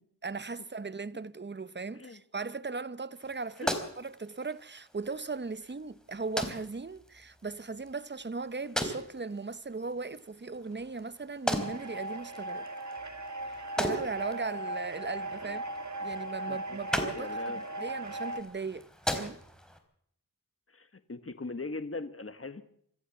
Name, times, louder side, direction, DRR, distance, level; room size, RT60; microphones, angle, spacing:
voice 1, 0.2-12.7 13.5-15.6 16.0-19.4, right 4 dB, 30° right, 0.9 m, -38 dB
sound 1, 3.1-19.8, equal, ahead, 4.2 m, -39 dB
sound 2, 11.6-18.4, right 1 dB, 55° right, 2.3 m, -38 dB
voice 2, 16.5-16.8 17.2-17.6 20.7-22.6, left 3 dB, 40° left, 1.6 m, -40 dB
26.5 x 13.5 x 7.2 m
wide cardioid pair, 55°, 35 cm